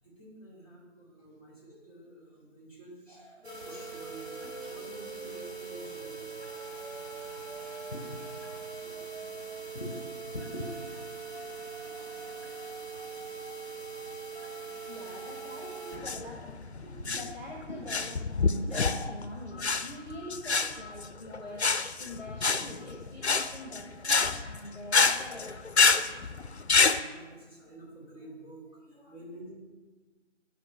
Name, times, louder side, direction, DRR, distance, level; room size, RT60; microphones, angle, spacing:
voice 1, 0.0-6.3 26.5-26.6 26.9-29.5, right 1 dB, 30° right, -9 dB, 2.5 m, -49 dB
sound 1, 3.4-16.0, right 4 dB, 60° right, 1.8 m, -41 dB
voice 2, 10.3-10.9 14.8-25.6, left 1 dB, 40° left, -1 dB, 0.9 m, -43 dB
sound 2, 15.9-27.0, left 4 dB, 60° left, 0.5 m, -27 dB
8.3 x 4.3 x 5.5 m, 1.3 s
figure-of-eight pair, 180°, 37 cm